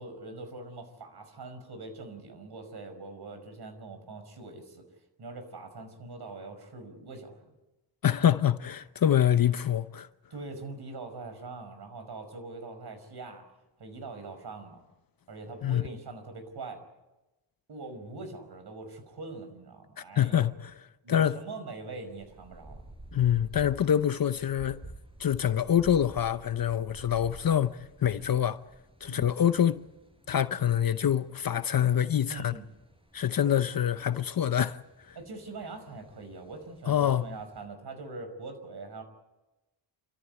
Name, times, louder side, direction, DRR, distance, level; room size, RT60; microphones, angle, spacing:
voice 1, 0.0-4.8 5.2-7.5 10.3-13.4 13.8-14.8 15.3-16.8 17.7-20.5 21.0-22.8 29.1-29.3 32.3-32.7 35.2-39.0, right 3 dB, 65° right, 5.5 m, -43 dB
voice 2, 8.0-10.1 15.6-15.8 20.0-20.8 21.1-21.4 23.1-24.8 25.2-28.6 29.0-29.8 30.3-32.5 33.1-34.8 35.1-35.2 36.9-37.2, left 10 dB, 55° left, 0.8 m, -26 dB
sound 1, 22.0-37.6, right 2 dB, 10° right, 5.0 m, -51 dB
27.5 x 14.0 x 9.8 m
wide cardioid pair, 105°, 43 cm